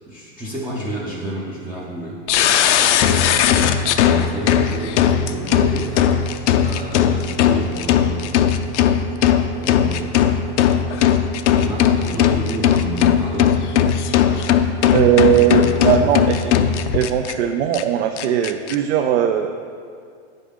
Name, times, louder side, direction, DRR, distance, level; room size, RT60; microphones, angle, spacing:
voice 1, 0.1-2.4 2.8-8.5 9.6-10.9 11.6-13.7 14.2-14.6 15.4-16.2, right 1 dB, 5° right, -6 dB, 0.4 m, -31 dB
sound 1, 2.3-17.3 17.7-17.8 18.2-18.7, left 9 dB, 80° left, 0.5 m, -18 dB
voice 2, 14.9-16.5 16.9-19.5, right 10 dB, 75° right, 5 dB, 0.5 m, -18 dB
8.8 x 5.3 x 3.6 m, 2.3 s
supercardioid pair, 145°, 35 cm